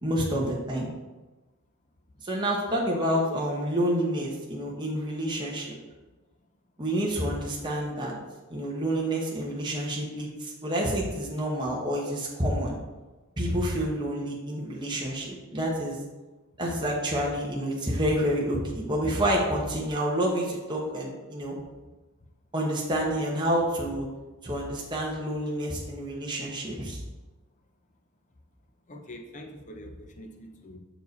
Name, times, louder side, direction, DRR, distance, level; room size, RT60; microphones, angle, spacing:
voice 1, 0.0-0.9 2.2-5.7 6.8-8.2 8.5-12.8 13.4-16.0 16.6-21.6 22.5-24.1 24.4-27.0, equal, 20° right, -3 dB, 1.0 m, -28 dB
voice 2, 28.9-30.8, equal, 35° left, 4 dB, 0.7 m, -44 dB
6.6 x 4.7 x 4.1 m, 1.2 s
head